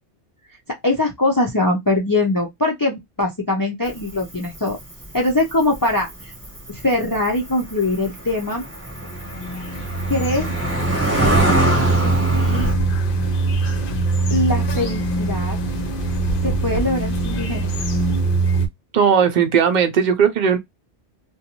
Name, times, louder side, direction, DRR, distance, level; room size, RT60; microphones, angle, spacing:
voice 1, 0.8-4.8 5.1-6.3 6.7-8.6 10.1-10.5 11.5-11.7 12.0-12.7 14.3-15.6 16.4-17.7, left 2 dB, 35° left, 0.3 m, -22 dB
Cricket, 3.8-12.7, right 1 dB, 15° right, 0.9 m, -25 dB
sound 1, 9.0-18.7, right 3 dB, 60° left, 0.7 m, -22 dB
voice 2, 18.9-20.6, right 7 dB, 50° right, 0.6 m, -17 dB
2.5 x 2.2 x 2.8 m
omnidirectional pair, 1.1 m